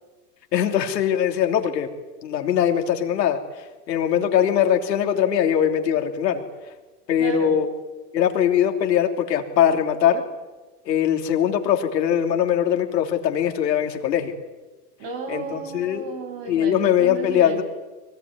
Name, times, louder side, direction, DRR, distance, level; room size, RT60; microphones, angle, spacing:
voice 1, 0.5-1.9 2.2-6.4 7.1-7.7 8.1-10.2 10.8-14.3 15.3-16.1 16.5-17.6, left 9 dB, 80° left, 4 dB, 3.2 m, -21 dB
voice 2, 7.2-7.6 15.0-17.6, right 5 dB, 55° right, 5 dB, 7.6 m, -34 dB
23.5 x 18.0 x 9.7 m, 1.2 s
hypercardioid pair, 115°, 49 cm